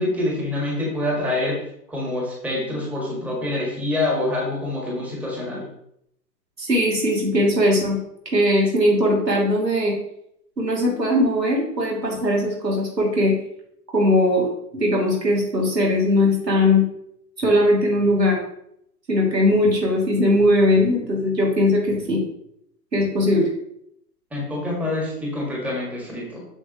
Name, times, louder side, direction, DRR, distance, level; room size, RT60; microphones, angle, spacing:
voice 1, 0.0-1.6 1.9-5.6 24.3-26.4, left 2 dB, 5° right, -4 dB, 1.7 m, -26 dB
voice 2, 6.6-8.0 8.3-9.9 10.6-13.3 13.9-16.8 17.4-18.4 19.1-22.2 22.9-23.5, left 1 dB, 80° right, -3 dB, 2.8 m, -19 dB
7.6 x 6.6 x 3.0 m, 0.74 s
figure-of-eight pair, 115°, 49 cm